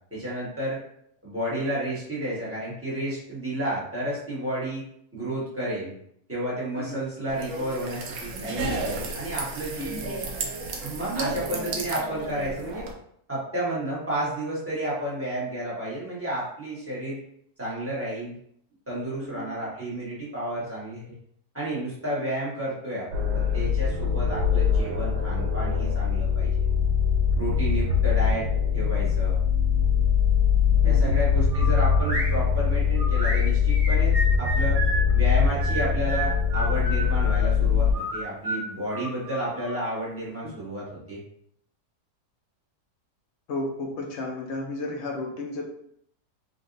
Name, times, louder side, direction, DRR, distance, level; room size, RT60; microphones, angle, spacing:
voice 1, 0.1-0.8 1.2-4.8 5.1-5.9 6.3-10.0 10.8-12.9 13.3-17.2 17.6-18.4 18.9-21.2 21.5-26.5 27.4-28.5 28.7-29.4 30.8-34.8 35.1-41.2, right 1 dB, 10° right, -8 dB, 1.0 m, -31 dB
sound 1, 7.3-12.9, right 2 dB, 70° right, 1.0 m, -32 dB
sound 2, 23.1-37.9, left 6 dB, 85° right, 1.2 m, -22 dB
voice 2, 30.8-31.2 40.4-40.5 43.5-45.6, left 2 dB, 60° left, 1 dB, 0.7 m, -33 dB
sound 3, 31.5-32.3 33.0-35.0 35.6-37.4 37.9-39.8, right 2 dB, 30° right, 0.7 m, -32 dB
3.7 x 2.5 x 2.5 m, 0.69 s
omnidirectional pair, 1.7 m